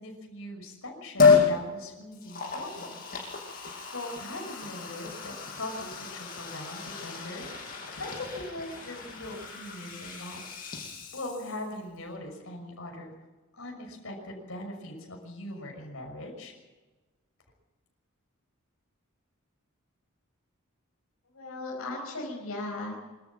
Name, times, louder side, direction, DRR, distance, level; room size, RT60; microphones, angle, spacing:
voice 1, 0.0-3.2 3.9-10.6 11.1-13.1 13.5-16.5, left 1 dB, 70° left, 1 dB, 6.2 m, -40 dB
Liquid, 1.2-1.5 2.1-11.8 12.1-12.2, left 5 dB, 45° left, 6.5 m, -29 dB
voice 2, 21.3-22.9, left 2 dB, 85° left, -2 dB, 4.7 m, -36 dB
25.5 x 14.0 x 7.4 m, 1.2 s
head